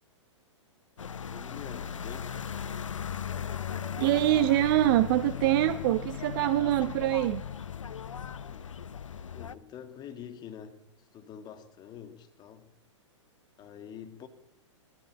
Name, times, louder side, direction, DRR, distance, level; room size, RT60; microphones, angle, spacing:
sound 1, 1.0-9.6, left 7 dB, 80° left, 1.0 m, -37 dB
voice 1, 1.3-2.4 8.4-8.6 9.3-12.7 13.6-14.3, left 8 dB, 25° left, 2.4 m, -46 dB
sound 2, 2.5-7.7, right 1 dB, 65° right, 6.8 m, -58 dB
voice 2, 4.0-7.4, right 14 dB, 45° right, 1.0 m, -24 dB
20.5 x 15.5 x 8.7 m
hypercardioid pair, 115°, 16 cm